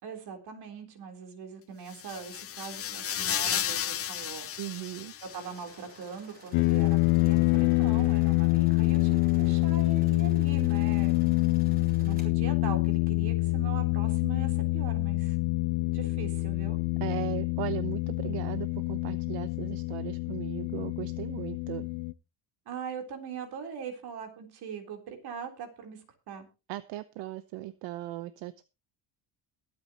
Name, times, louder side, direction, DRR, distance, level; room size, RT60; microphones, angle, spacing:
voice 1, 0.0-4.5 5.2-11.2 12.0-15.4 15.9-16.8 22.7-26.0 26.3-26.5, right 6 dB, 60° right, 5 dB, 3.8 m, -41 dB
sound 1, 1.9-5.8, left 10 dB, 30° left, 0.8 m, -33 dB
voice 2, 4.6-5.1 17.0-21.9 26.7-28.6, right 15 dB, 80° right, 13 dB, 1.0 m, -37 dB
sound 2, 5.3-12.3, right 2 dB, 20° right, 3.9 m, -55 dB
sound 3, 6.5-22.1, left 23 dB, 80° left, 0.6 m, -26 dB
22.0 x 8.9 x 3.0 m, 0.30 s
cardioid pair, 140°, 43 cm